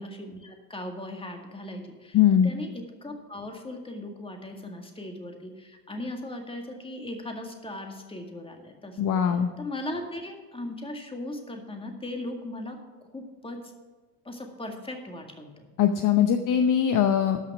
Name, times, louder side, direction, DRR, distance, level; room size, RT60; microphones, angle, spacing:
voice 1, 0.0-2.2 2.4-9.0 9.2-12.8 13.1-13.6 14.3-15.7, left 1 dB, 10° left, 3 dB, 1.9 m, -38 dB
voice 2, 2.1-2.5 9.0-9.5 15.8-17.5, left 9 dB, 40° left, 7 dB, 0.8 m, -21 dB
13.0 x 5.8 x 6.1 m, 1.4 s
hypercardioid pair, 80°, 47 cm